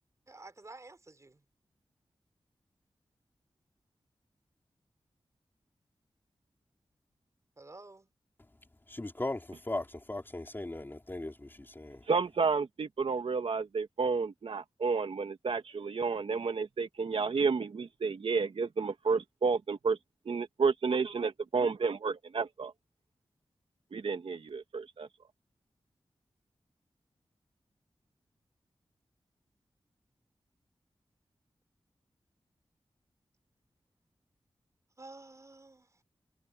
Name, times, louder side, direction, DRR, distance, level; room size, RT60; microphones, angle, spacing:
voice 1, 0.3-1.3 7.6-8.1 35.0-35.8, right 2 dB, 35° right, 5.3 m, -50 dB
voice 2, 8.9-12.0, left 2 dB, 20° left, 3.9 m, -38 dB
voice 3, 12.1-20.0 20.3-22.7 23.9-25.1, right 4 dB, 80° right, 2.0 m, -31 dB
wide cardioid pair, 110°, 9 cm